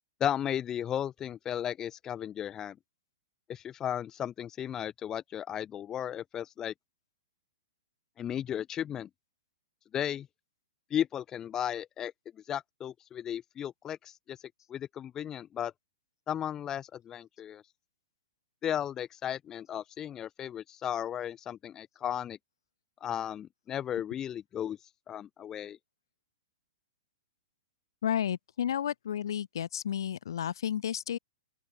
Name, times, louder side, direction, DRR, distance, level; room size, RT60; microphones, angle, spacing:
voice 1, 0.2-2.8 3.5-6.7 8.2-9.1 9.9-10.3 10.9-12.1 12.5-14.4 14.7-15.7 16.3-17.6 18.6-22.4 23.0-24.8 25.1-25.8, left 10 dB, 25° left, 0.9 m, -35 dB
voice 2, 28.0-31.2, left 9 dB, 70° left, 1.7 m, -32 dB
open air
hypercardioid pair, 115°, 2 cm